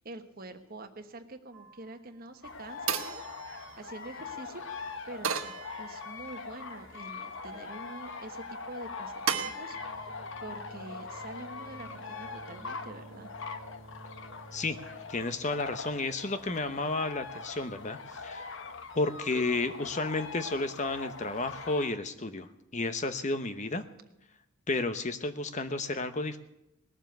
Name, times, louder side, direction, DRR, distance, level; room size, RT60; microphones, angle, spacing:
voice 1, 0.0-13.3, right 2 dB, 45° right, 6 dB, 1.3 m, -46 dB
sound 1, 1.5-2.0 2.9-4.2 5.2-6.3 6.9-7.5 9.3-9.5, right 7 dB, 80° right, 1.2 m, -36 dB
sound 2, 2.4-21.9, left 4 dB, 65° left, 1.1 m, -42 dB
sound 3, 9.7-16.4, right 2 dB, 90° left, 6.6 m, -52 dB
voice 2, 15.1-18.6 18.9-23.8 24.7-26.4, left 2 dB, 35° left, 10 dB, 1.0 m, -32 dB
19.0 x 7.4 x 9.2 m, 0.86 s
head